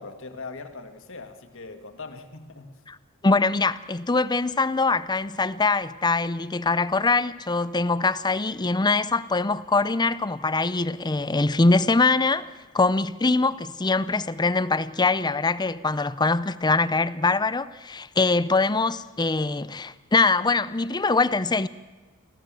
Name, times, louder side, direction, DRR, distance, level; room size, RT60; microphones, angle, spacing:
voice 1, 0.0-2.7, left 3 dB, 65° left, 2.0 m, -40 dB
voice 2, 3.2-21.7, left 3 dB, 20° left, 0.6 m, -23 dB
25.5 x 16.0 x 7.6 m
head